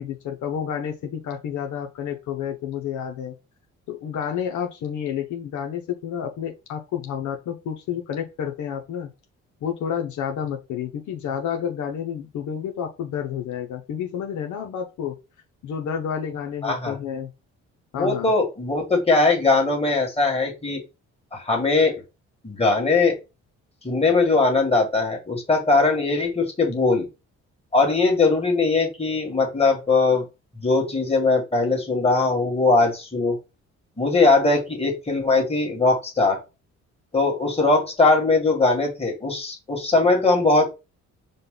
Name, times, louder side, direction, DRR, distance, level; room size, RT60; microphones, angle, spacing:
voice 1, 0.0-3.3 3.9-9.1 9.6-15.1 15.6-17.3 17.9-18.3, left 8 dB, 75° left, 3 dB, 0.8 m, -30 dB
voice 2, 16.6-17.0 17.9-20.8 21.3-22.0 22.4-23.2 23.8-27.1 27.7-30.2 30.6-33.4 34.0-36.4 37.1-40.6, left 3 dB, 20° left, 0 dB, 1.8 m, -20 dB
5.2 x 2.3 x 3.7 m, 0.27 s
cardioid pair, 90°, 30 cm